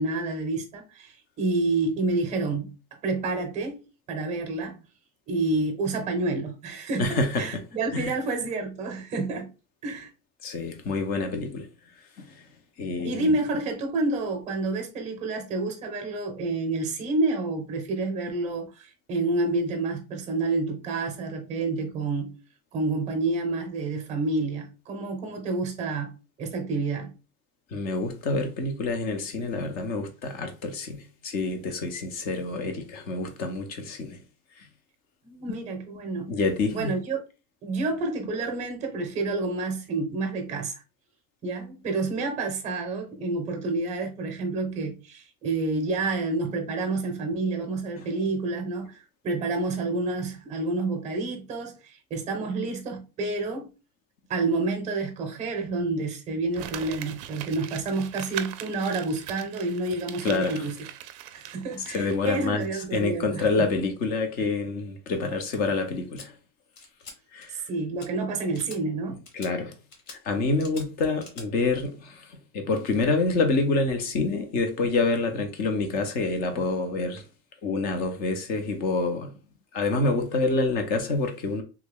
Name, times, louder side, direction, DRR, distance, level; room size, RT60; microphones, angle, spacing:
voice 1, 0.0-2.7 3.0-3.8 4.1-4.8 5.3-9.5 9.8-10.1 13.0-22.4 22.7-27.1 35.2-36.3 36.7-37.2 37.6-40.8 41.4-53.7 54.3-60.8 61.3-63.7 67.7-69.2, right 3 dB, 15° right, 0.7 m, -29 dB
voice 2, 7.0-7.6 7.9-8.1 10.4-11.7 12.2-12.4 12.8-13.3 27.7-34.2 34.6-34.7 35.5-35.6 36.3-36.9 48.0-48.1 60.2-60.6 61.9-66.3 67.3-67.6 69.3-69.7 70.1-77.2 77.6-79.3 79.7-81.6, left 3 dB, 25° left, 0.4 m, -27 dB
Crumpling crinkling, 56.5-62.3 62.6-62.7, right 12 dB, 55° right, 0.5 m, -40 dB
sound 1, 66.2-66.3 66.8-67.2 67.4-67.7 68.0-68.1 68.5-68.8 69.3-69.5 69.9-70.2 70.6-70.9 71.2-71.5, left 4 dB, 50° left, 1.1 m, -44 dB
3.4 x 2.2 x 3.3 m
cardioid pair, 175°, 40 cm